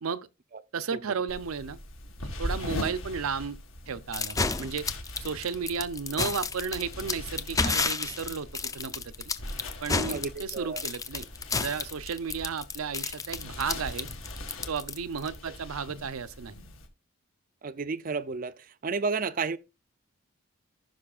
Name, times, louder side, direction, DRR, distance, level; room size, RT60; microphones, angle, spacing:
voice 1, 0.7-1.8 2.4-3.6 3.9-4.9 5.2-9.3 9.8-11.3 11.5-14.1 14.7-16.5, right 6 dB, 85° right, 0.6 m, -33 dB
sound 1, 1.3-16.9, left 1 dB, 70° left, 1.9 m, -41 dB
sound 2, 4.1-15.3, left 4 dB, 15° left, 0.5 m, -31 dB
voice 2, 10.1-10.8 17.6-19.6, right 4 dB, 40° right, 0.4 m, -32 dB
14.5 x 6.1 x 2.4 m
head